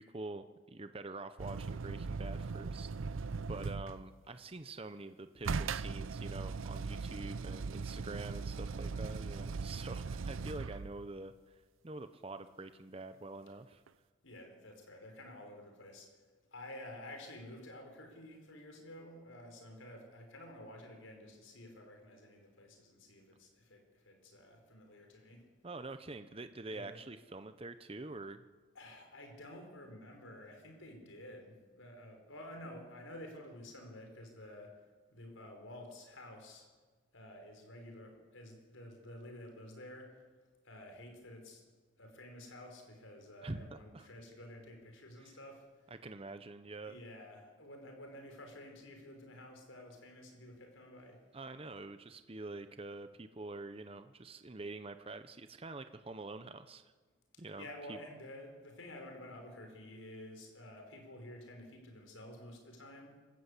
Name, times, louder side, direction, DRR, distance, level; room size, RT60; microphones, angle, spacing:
voice 1, 0.0-3.2 3.5-13.8 25.6-28.4 43.4-44.1 45.2-45.3 46.0-47.0 51.3-56.9 57.4-58.0, right 2 dB, 30° right, 10 dB, 0.7 m, -46 dB
sound 1, 1.4-4.1 5.4-11.1 13.9-14.0, right 4 dB, 85° right, 0.6 m, -39 dB
voice 2, 8.8-9.1 14.2-16.1 16.5-25.5 26.7-27.0 28.7-34.8 35.1-36.7 37.1-40.2 40.6-41.7 42.0-45.6 46.8-51.2 57.3-63.2, left 1 dB, 80° left, 4 dB, 5.1 m, -51 dB
26.5 x 14.0 x 8.3 m, 1.4 s
head